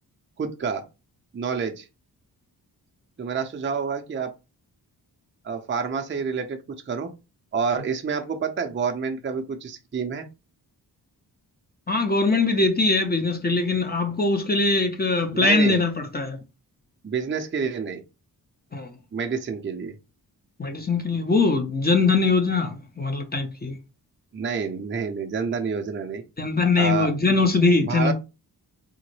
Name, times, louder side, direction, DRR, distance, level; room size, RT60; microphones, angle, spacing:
voice 1, 0.4-0.8 1.3-1.9 3.2-4.3 5.4-6.6 6.9-7.1 7.5-10.3 15.3-15.8 17.0-18.0 19.1-19.9 24.3-26.2 26.8-27.2 27.8-28.1, right 5 dB, 30° right, 0.5 m, -28 dB
voice 2, 11.9-16.4 18.7-18.9 20.6-23.8 26.4-28.1, left 3 dB, 25° left, 0.7 m, -22 dB
3.7 x 2.1 x 3.1 m
cardioid pair, 80°, 40 cm